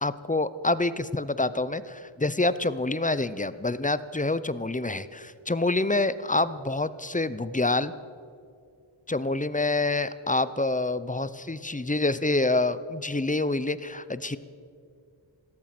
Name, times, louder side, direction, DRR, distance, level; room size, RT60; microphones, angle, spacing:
voice 1, 0.0-7.9 9.1-14.4, left 2 dB, 15° left, 15 dB, 0.6 m, -27 dB
16.5 x 14.0 x 5.9 m, 2.4 s
wide cardioid pair, 45°, 49 cm